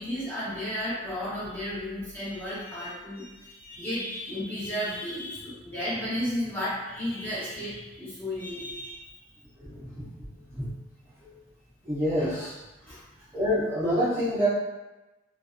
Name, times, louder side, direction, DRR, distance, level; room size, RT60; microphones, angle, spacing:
voice 1, 0.0-9.1 12.8-13.3, left 1 dB, 10° left, -11 dB, 0.9 m, -33 dB
voice 2, 9.6-10.0 10.5-10.7 11.9-12.5 13.3-14.5, equal, 15° right, -13 dB, 0.6 m, -27 dB
2.5 x 2.2 x 2.4 m, 1.1 s
head